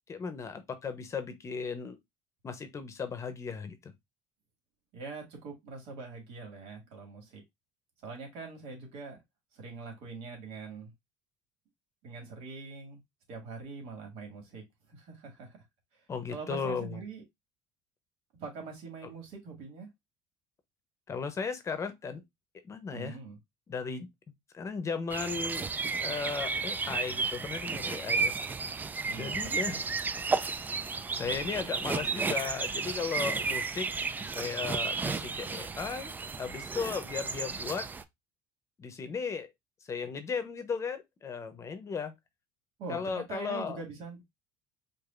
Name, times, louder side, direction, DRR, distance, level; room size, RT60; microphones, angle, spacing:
voice 1, 0.1-2.0 2.4-3.9 16.1-17.0 21.1-22.2 22.6-23.2 23.7-24.1 24.5-25.7 26.0-28.3 29.2-29.8 31.2-33.9 34.3-37.9 38.8-39.5 39.9-42.1 42.9-43.8, left 5 dB, 30° left, 0.8 m, -36 dB
voice 2, 4.9-7.4 8.0-9.2 9.5-10.9 12.0-13.0 13.3-15.6 15.9-17.2 18.4-19.9 22.9-23.4 29.0-29.8 42.8-44.2, right 4 dB, 70° right, 2.0 m, -43 dB
sound 1, 25.1-38.0, right 4 dB, 15° right, 0.3 m, -33 dB
4.8 x 2.6 x 2.4 m
cardioid pair, 115°, 10 cm